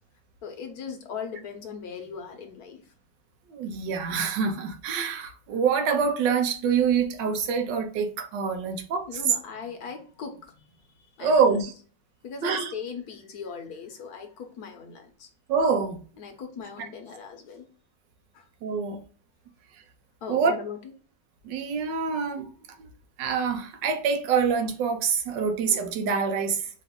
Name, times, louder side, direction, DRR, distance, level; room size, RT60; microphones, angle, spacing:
voice 1, 0.4-2.9 9.1-11.5 12.2-15.3 16.2-17.7 18.3-18.5 20.2-20.8, left 6 dB, 65° left, 1.2 m, -39 dB
voice 2, 3.5-9.2 11.2-11.7 12.4-12.7 15.5-16.0 18.6-19.0 20.3-20.5 21.4-22.5 22.8-22.9 23.2-26.7, right 6 dB, 85° right, 1.4 m, -25 dB
4.9 x 2.4 x 3.5 m
omnidirectional pair, 1.9 m